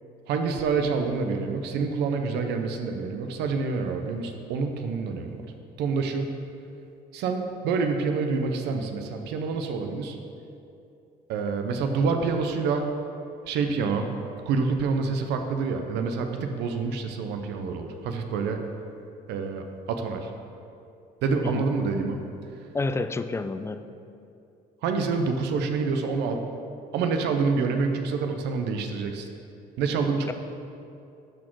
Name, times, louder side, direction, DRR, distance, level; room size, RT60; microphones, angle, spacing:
voice 1, 0.3-5.4 5.8-6.3 7.1-10.2 11.3-12.9 13.5-14.1 14.5-18.7 19.3-20.3 21.2-22.2 24.8-26.5 26.9-29.3 29.8-30.3, right 4 dB, 85° right, 5 dB, 0.7 m, -27 dB
voice 2, 22.7-23.9, left 3 dB, 15° left, 11 dB, 0.3 m, -29 dB
12.0 x 4.2 x 4.6 m, 2.6 s
cardioid pair, 110°, 17 cm